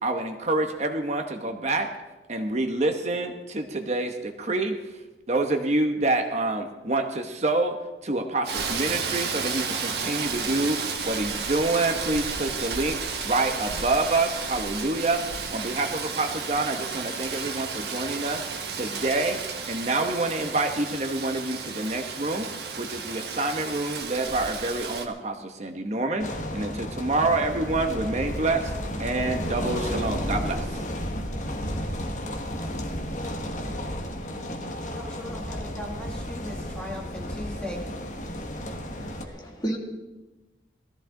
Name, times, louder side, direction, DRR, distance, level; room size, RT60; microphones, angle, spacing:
voice 1, 0.0-1.9 2.3-4.7 5.3-7.8 8.0-10.8 11.0-12.9 13.2-15.2 15.5-18.4 18.7-19.4 19.7-22.5 22.8-26.3 26.5-28.7 29.0-30.8, right 2 dB, 35° right, 5 dB, 1.0 m, -27 dB
Rain, 8.4-25.1, right 5 dB, 60° right, 1.4 m, -32 dB
sound 1, 26.2-39.3, equal, 40° left, 1.4 m, -32 dB
voice 2, 34.9-37.8, left 1 dB, 5° left, -1 dB, 1.3 m, -38 dB
voice 3, 38.9-39.8, right 1 dB, 20° left, -1 dB, 2.1 m, -33 dB
19.0 x 14.0 x 3.8 m, 1.1 s
head